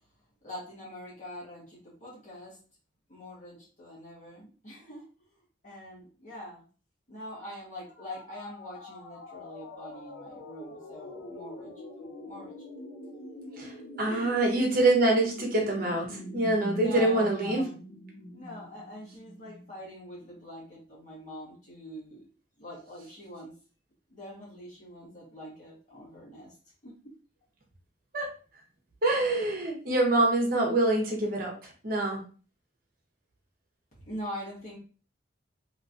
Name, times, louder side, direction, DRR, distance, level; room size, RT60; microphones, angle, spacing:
voice 1, 0.4-2.6 3.1-5.1 5.6-6.7 7.1-11.8 12.2-12.5 14.0-14.3 16.7-17.7 18.3-22.2 22.6-23.5 24.1-26.5 26.8-26.9 34.0-34.8, equal, 40° left, -7 dB, 1.5 m, -43 dB
sound 1, 7.9-19.7, left 1 dB, 60° left, 0.5 m, -44 dB
voice 2, 13.6-17.6 28.1-28.3 29.0-31.5 31.8-32.2, right 2 dB, 50° right, 0 dB, 1.1 m, -25 dB
3.1 x 3.0 x 2.6 m, 0.39 s
head